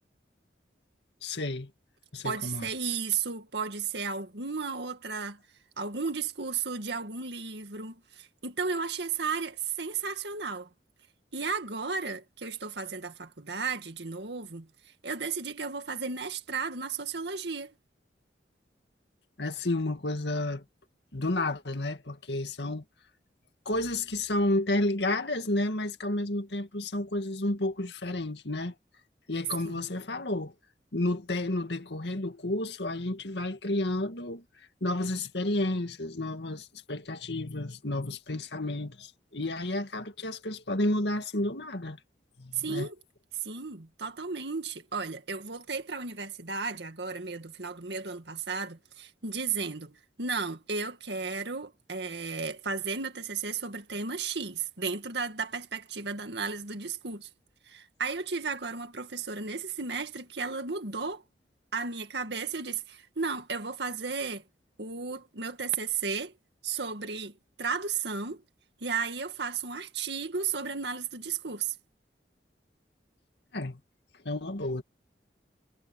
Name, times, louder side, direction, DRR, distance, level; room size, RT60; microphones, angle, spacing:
voice 1, 1.2-1.7 2.1-2.7 19.4-20.6 21.1-22.8 23.7-28.7 29.3-30.5 30.9-34.4 34.8-42.0 42.4-42.9 73.5-73.8 74.2-74.8, left 1 dB, 75° left, 2.1 m, -31 dB
voice 2, 2.2-5.4 5.8-10.7 11.3-14.7 15.0-17.7 29.6-29.8 42.5-43.0 43.4-57.3 57.7-61.2 61.7-64.4 64.8-66.3 66.6-68.4 68.8-71.8, right 5 dB, 75° right, 2.1 m, -34 dB
head